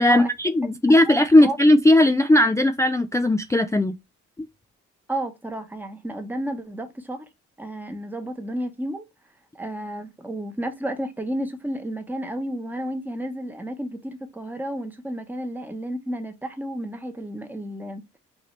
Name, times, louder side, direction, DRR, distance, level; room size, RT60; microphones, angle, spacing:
voice 1, 0.0-3.9, left 1 dB, 10° left, 0.4 m, -17 dB
voice 2, 1.0-1.6 5.1-7.3 7.6-9.1 9.6-18.0, right 1 dB, 5° right, 1.1 m, -32 dB
5.7 x 2.7 x 3.3 m
cardioid pair, 90°, 30 cm